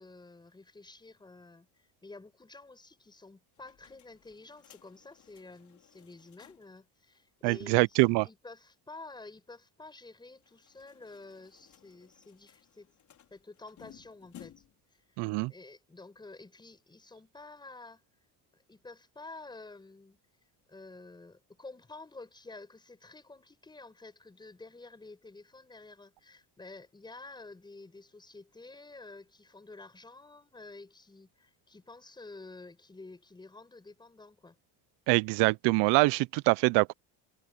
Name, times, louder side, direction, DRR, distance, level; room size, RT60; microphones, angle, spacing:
voice 1, 0.0-12.9 13.3-14.6 14.9-15.2 15.5-18.3 18.5-20.2 20.7-34.6, left 3 dB, 10° left, 5.5 m, -50 dB
sound 1, 3.6-6.8 7.1-7.2 7.5-7.6 10.3-14.9, left 11 dB, 45° left, 5.4 m, -58 dB
voice 2, 7.4-8.2 15.2-15.5 35.1-36.9, right 24 dB, 85° right, 0.5 m, -24 dB
cardioid pair, 170°, 41 cm